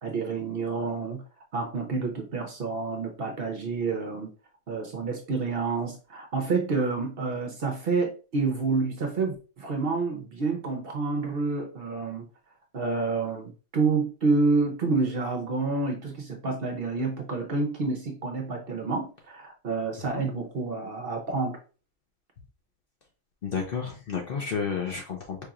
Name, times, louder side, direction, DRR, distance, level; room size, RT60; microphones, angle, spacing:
voice 1, 0.0-1.2 1.5-4.3 4.7-12.3 12.7-21.6, right 4 dB, 55° right, 3 dB, 0.7 m, -28 dB
voice 2, 23.4-25.4, left 6 dB, 55° left, 2 dB, 0.7 m, -31 dB
4.6 x 2.9 x 2.4 m, 0.34 s
omnidirectional pair, 1.4 m